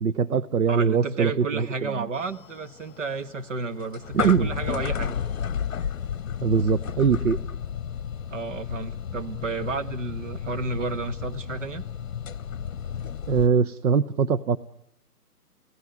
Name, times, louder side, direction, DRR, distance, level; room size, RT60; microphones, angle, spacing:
voice 1, 0.0-2.1 4.1-4.5 6.4-7.4 13.3-14.6, right 6 dB, 65° right, 14 dB, 0.9 m, -22 dB
voice 2, 0.7-5.2 8.3-11.8, right 4 dB, 50° right, 10 dB, 1.6 m, -32 dB
sound 1, 2.1-13.5, left 8 dB, 55° left, 0.9 m, -33 dB
30.0 x 16.5 x 9.5 m, 0.77 s
hypercardioid pair, 155°, 46 cm